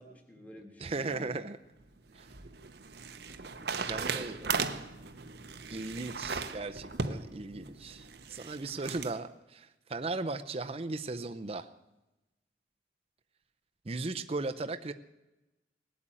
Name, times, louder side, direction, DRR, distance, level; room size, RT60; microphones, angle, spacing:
voice 1, 0.0-1.4 4.0-4.7, equal, 10° left, 1 dB, 1.6 m, -50 dB
voice 2, 0.8-1.6 2.1-2.3 3.8-4.4 5.7-11.7 13.9-14.9, right 3 dB, 35° right, 8 dB, 0.6 m, -37 dB
sound 1, 1.8-9.1, right 5 dB, 60° right, 0.8 m, -37 dB
19.5 x 8.4 x 8.9 m, 1.0 s
head